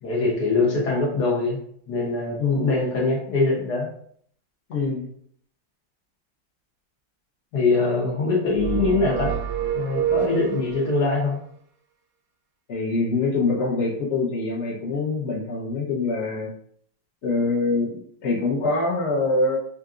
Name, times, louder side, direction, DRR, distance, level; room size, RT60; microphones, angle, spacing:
voice 1, 0.0-1.6 1.9-3.9 7.5-9.4 9.7-11.4, left 3 dB, 65° left, -2 dB, 1.4 m, -23 dB
voice 2, 4.7-5.1 12.7-16.5 17.2-19.6, left 3 dB, 45° left, -4 dB, 1.1 m, -24 dB
sound 1, 8.5-11.0, right 9 dB, 80° right, 1.3 m, -27 dB
5.6 x 2.6 x 2.5 m, 0.64 s
omnidirectional pair, 2.0 m